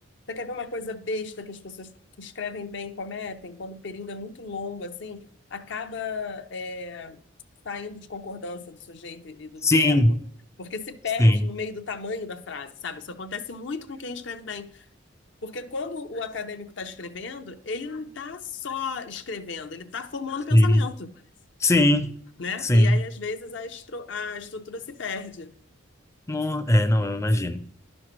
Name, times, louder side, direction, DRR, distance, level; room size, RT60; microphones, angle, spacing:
voice 1, 0.3-5.2 5.5-7.2 7.6-10.2 10.6-14.9 15.4-21.1 22.4-25.5, left 4 dB, 65° left, 0.6 m, -35 dB
voice 2, 9.6-10.2 11.2-11.4 20.5-20.8 21.6-22.2 22.6-23.0 26.3-27.7, left 1 dB, 15° left, 0.4 m, -19 dB
10.5 x 6.3 x 3.0 m
head